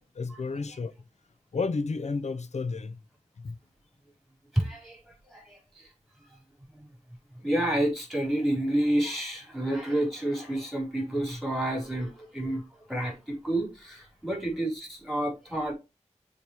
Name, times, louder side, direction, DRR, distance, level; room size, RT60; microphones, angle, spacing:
voice 1, 0.2-0.9 1.5-3.0 3.4-3.6, left 4 dB, 65° left, 0.7 m, -31 dB
voice 2, 4.5-5.9 6.2-6.4 6.7-6.9 7.3-15.7, right 1 dB, ahead, 4.1 m, -30 dB
7.0 x 4.7 x 4.6 m
wide cardioid pair, 85°, 12 cm